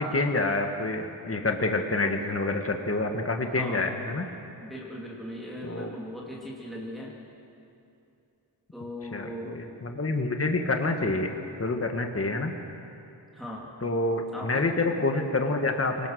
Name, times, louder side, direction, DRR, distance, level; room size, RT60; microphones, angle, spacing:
voice 1, 0.0-4.2 5.6-5.9 9.1-12.5 13.8-16.1, left 2 dB, 30° left, 4 dB, 1.6 m, -27 dB
voice 2, 3.5-3.9 4.6-7.1 8.7-9.5 13.3-13.7 14.3-14.7, equal, ahead, -4 dB, 2.6 m, -38 dB
25.0 x 18.5 x 6.4 m, 2.7 s
wide cardioid pair, 100°, 44 cm